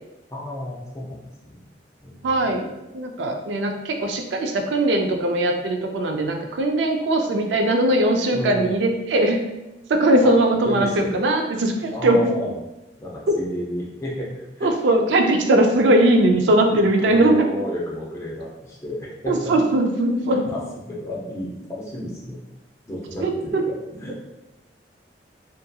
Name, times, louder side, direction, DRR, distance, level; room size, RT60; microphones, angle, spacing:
voice 1, 0.3-1.6 2.0-2.5 8.3-8.7 10.2-10.3 10.6-11.2 11.9-12.5 13.0-15.0 15.7-15.8 16.7-19.5 20.3-20.6 20.9-22.4 22.9-24.2, left 1 dB, 15° left, -5 dB, 0.6 m, -32 dB
voice 2, 2.2-2.7 2.9-9.4 9.9-12.2 13.3-13.4 14.6-17.3 19.3-20.4 23.2-23.6, right 1 dB, 80° right, 3 dB, 0.3 m, -20 dB
2.7 x 2.5 x 2.2 m, 0.99 s
head